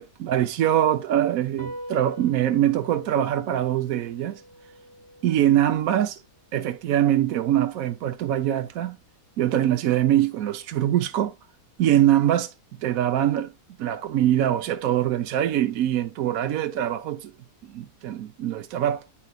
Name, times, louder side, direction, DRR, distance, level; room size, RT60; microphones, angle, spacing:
voice 1, 0.0-4.4 5.2-6.2 6.5-9.0 9.4-11.3 11.8-12.5 12.8-13.5 13.8-17.3 17.7-19.1, right 11 dB, 65° right, 1.0 m, -23 dB
sound 1, 1.6-8.3, equal, 15° left, 0.9 m, -45 dB
9.1 x 5.8 x 2.3 m
omnidirectional pair, 1.8 m